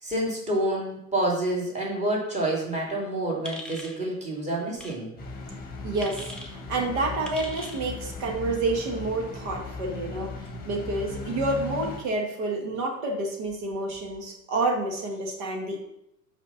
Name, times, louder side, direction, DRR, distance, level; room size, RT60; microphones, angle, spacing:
voice 1, 0.0-5.1, right 1 dB, 15° right, -3 dB, 2.8 m, -28 dB
sound 1, 3.4-4.0 4.8-5.0 6.0-6.5 7.2-7.8, left 1 dB, ahead, 0.9 m, -40 dB
sound 2, 5.2-12.0, left 3 dB, 20° left, 1.5 m, -37 dB
voice 2, 5.8-10.4 10.7-15.8, right 2 dB, 40° right, 1 dB, 1.9 m, -29 dB
5.9 x 5.7 x 5.7 m, 0.80 s
figure-of-eight pair, 90°, 48 cm